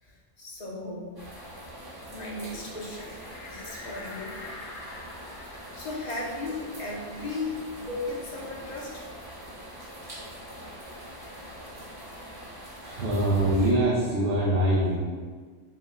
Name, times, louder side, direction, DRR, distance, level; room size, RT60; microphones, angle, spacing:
voice 1, 0.0-1.2 2.1-3.1 3.4-4.4 5.4-9.0 12.9-13.0, left 2 dB, 45° left, -3 dB, 0.6 m, -36 dB
sound 1, 1.2-13.7, equal, 25° right, 0.6 m, -43 dB
sound 2, 2.9-8.1 8.4-8.5 8.9-10.5, left 2 dB, 85° left, 0.9 m, -47 dB
voice 2, 12.8-15.0, right 1 dB, 65° right, -6 dB, 0.9 m, -23 dB
4.1 x 2.1 x 3.5 m, 1.5 s
omnidirectional pair, 1.1 m